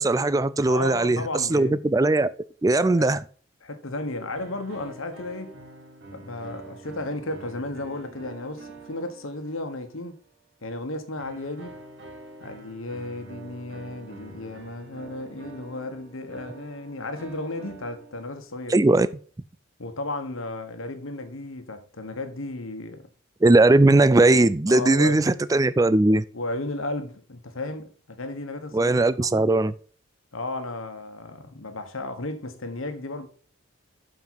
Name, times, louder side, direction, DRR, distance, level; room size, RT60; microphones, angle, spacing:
voice 1, 0.0-1.2 1.5-2.3 2.6-3.2 18.7-19.1 23.4-26.2 28.7-29.7, right 2 dB, 15° right, 0.3 m, -19 dB
voice 2, 0.7-1.8 3.0-3.1 3.6-5.6 6.1-10.2 10.6-11.8 12.4-18.7 19.8-23.1 24.7-25.2 26.3-29.5 30.3-33.3, left 2 dB, 75° left, 1.3 m, -34 dB
sound 1, 4.3-10.1 11.2-18.6, right 3 dB, 50° right, 1.6 m, -46 dB
7.3 x 5.3 x 5.9 m
head